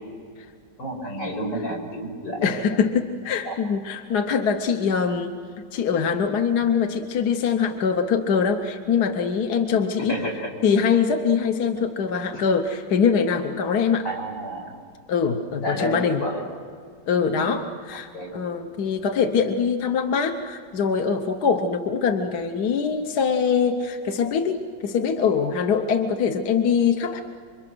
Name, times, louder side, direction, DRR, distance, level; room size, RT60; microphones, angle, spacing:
voice 1, 0.8-2.8 3.4-3.6 10.0-10.5 14.0-14.7 15.6-16.4 17.4-17.6 18.1-18.5, equal, 80° left, -1 dB, 6.2 m, -30 dB
voice 2, 2.4-10.2 10.6-14.0 15.1-16.2 17.1-27.2, left 6 dB, 60° left, 5 dB, 1.5 m, -23 dB
28.0 x 25.0 x 6.2 m, 2.2 s
omnidirectional pair, 2.0 m